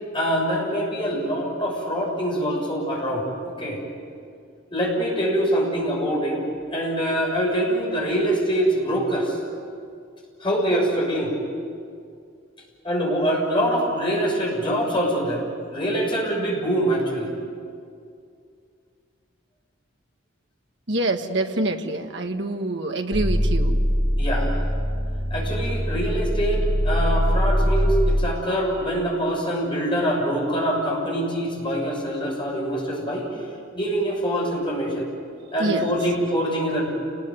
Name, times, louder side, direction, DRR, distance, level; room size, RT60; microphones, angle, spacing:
voice 1, 0.1-3.8 4.7-6.4 6.7-9.4 10.4-11.3 12.8-17.3 24.2-24.6 25.3-33.3 33.7-35.1 35.5-36.9, equal, 25° left, -2 dB, 6.7 m, -24 dB
voice 2, 20.9-23.8 35.6-35.9, right 2 dB, 55° right, 4 dB, 1.7 m, -26 dB
sound 1, 23.1-28.4, equal, ahead, 1.9 m, -22 dB
29.0 x 20.0 x 9.6 m, 2.4 s
head